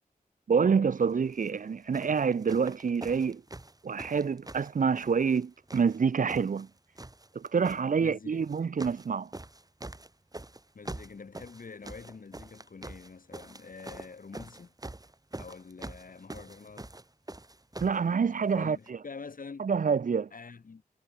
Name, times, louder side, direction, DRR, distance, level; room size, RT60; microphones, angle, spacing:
voice 1, 0.5-3.4 3.8-6.7 7.3-9.3 17.8-19.0 19.6-20.3, right 6 dB, 65° right, 0.6 m, -27 dB
sound 1, 1.3-1.6 1.9-5.4 5.7-6.7 7.0-7.8 8.4-9.1 9.3-18.0 18.9-19.0, right 2 dB, 25° right, 2.4 m, -44 dB
voice 2, 8.0-8.5 10.7-14.7 15.4-16.9 18.5-19.7 20.3-20.8, left 4 dB, 70° left, 2.4 m, -46 dB
wide cardioid pair, 70°, 15 cm